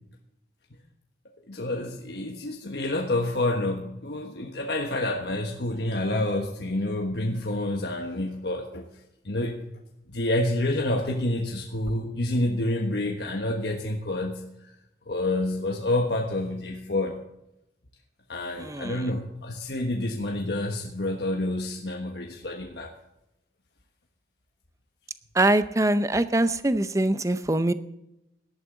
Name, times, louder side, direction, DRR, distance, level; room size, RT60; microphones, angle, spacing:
voice 1, 1.5-8.9 9.2-9.6 10.1-14.5 15.1-17.2 18.3-22.9, left 1 dB, 60° left, 2 dB, 1.4 m, -28 dB
voice 2, 18.6-19.0 25.4-27.7, right 1 dB, 15° right, 13 dB, 0.6 m, -23 dB
17.5 x 12.5 x 3.9 m, 0.87 s
head